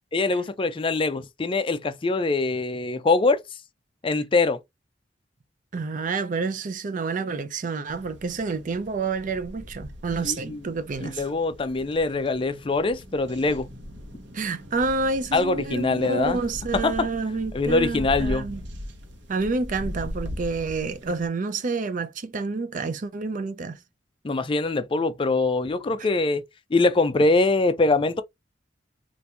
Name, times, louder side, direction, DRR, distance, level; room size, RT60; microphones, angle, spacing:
voice 1, 0.1-3.4 4.0-4.6 10.2-10.6 11.0-13.7 15.3-16.4 16.7-17.1 17.5-18.5 24.2-26.4 26.7-28.2, left 3 dB, 30° left, 0.4 m, -23 dB
voice 2, 5.7-11.3 14.3-18.6 19.3-23.8, right 3 dB, 45° right, 0.4 m, -29 dB
sound 1, 7.9-21.3, equal, 75° right, 1.0 m, -39 dB
2.8 x 2.5 x 3.4 m
head